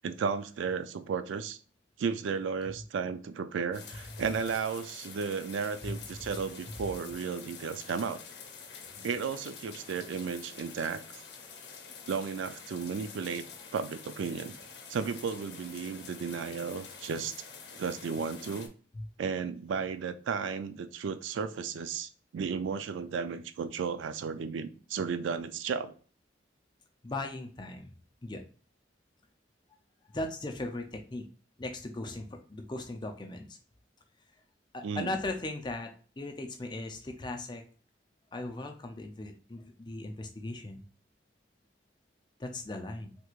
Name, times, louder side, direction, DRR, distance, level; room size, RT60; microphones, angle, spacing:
voice 1, 0.0-1.6 2.0-8.2 9.0-11.0 12.1-13.4 13.7-14.6 14.9-17.3 17.7-18.7 19.2-26.0 34.8-35.1, right 6 dB, 85° right, 11 dB, 0.4 m, -34 dB
sound 1, 3.7-18.7, left 5 dB, 60° left, 0.7 m, -48 dB
voice 2, 27.0-27.9 28.2-28.4 30.1-31.3 31.6-33.6 34.7-37.6 38.3-40.8 42.4-43.2, left 2 dB, 25° left, 4 dB, 0.4 m, -38 dB
3.4 x 3.1 x 2.4 m, 0.40 s
head